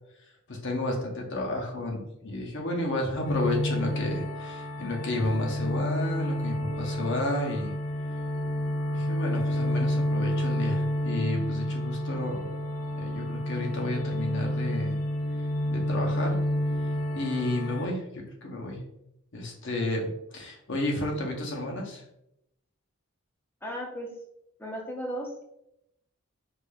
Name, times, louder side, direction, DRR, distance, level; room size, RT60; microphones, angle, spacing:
voice 1, 0.5-7.7 8.9-12.5 13.0-15.0 15.7-16.4 17.2-18.8 19.3-22.0, left 1 dB, 60° left, 0 dB, 0.8 m, -31 dB
sound 1, 3.2-17.9, left 1 dB, 80° left, 0.4 m, -29 dB
voice 2, 23.6-24.1 24.6-25.4, equal, 10° left, -1 dB, 0.7 m, -35 dB
4.8 x 2.5 x 2.3 m, 0.81 s
head